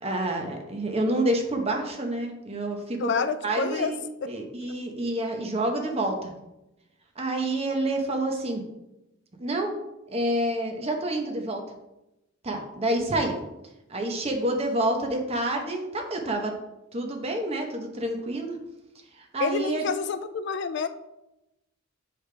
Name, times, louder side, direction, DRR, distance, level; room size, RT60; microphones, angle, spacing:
voice 1, 0.0-4.0 4.3-6.3 7.2-8.6 9.4-9.7 10.1-11.6 12.4-13.4 13.9-16.5 16.9-18.6 19.2-19.8, right 1 dB, 30° right, 3 dB, 0.9 m, -28 dB
voice 2, 3.0-3.9 4.2-4.3 19.4-20.9, left 5 dB, 60° left, 10 dB, 0.4 m, -28 dB
6.4 x 5.0 x 3.3 m, 0.93 s
head